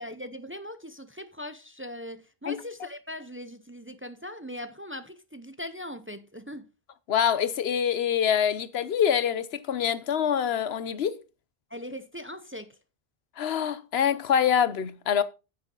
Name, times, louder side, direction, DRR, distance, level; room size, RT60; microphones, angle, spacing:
voice 1, 0.0-6.7 11.7-12.8, left 1 dB, 15° right, 0.6 m, -40 dB
voice 2, 7.1-11.2 13.4-15.2, left 8 dB, 80° left, 1.0 m, -25 dB
9.5 x 8.8 x 3.8 m
omnidirectional pair, 1.0 m